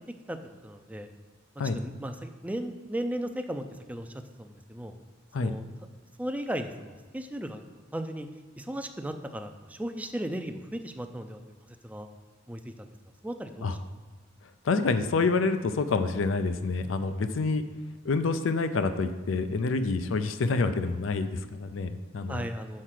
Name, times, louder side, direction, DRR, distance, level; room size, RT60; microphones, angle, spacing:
voice 1, 0.3-1.1 1.7-4.1 4.4-4.9 5.4-5.7 6.2-7.6 7.9-8.3 8.6-11.4 11.7-12.1 12.5-12.9 13.2-13.8 22.3-22.8, right 1 dB, 10° right, 7 dB, 0.4 m, -36 dB
voice 2, 14.6-17.6 18.0-22.4, left 4 dB, 75° left, 10 dB, 0.4 m, -27 dB
6.5 x 4.5 x 5.8 m, 1.4 s
head